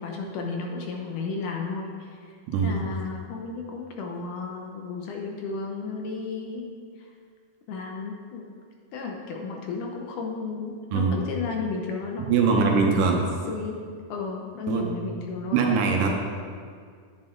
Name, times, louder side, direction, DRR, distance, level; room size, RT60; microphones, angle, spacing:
voice 1, 0.0-2.4 2.6-6.7 7.0-7.1 7.7-8.5 8.9-12.8 13.5-13.8 14.1-15.6, left 4 dB, 70° left, 1 dB, 2.2 m, -33 dB
voice 2, 2.5-2.8 10.9-11.2 12.2-13.2 14.7-14.8 15.5-16.1, right 5 dB, 70° right, 1 dB, 2.4 m, -22 dB
10.5 x 9.0 x 3.8 m, 2.1 s
omnidirectional pair, 4.1 m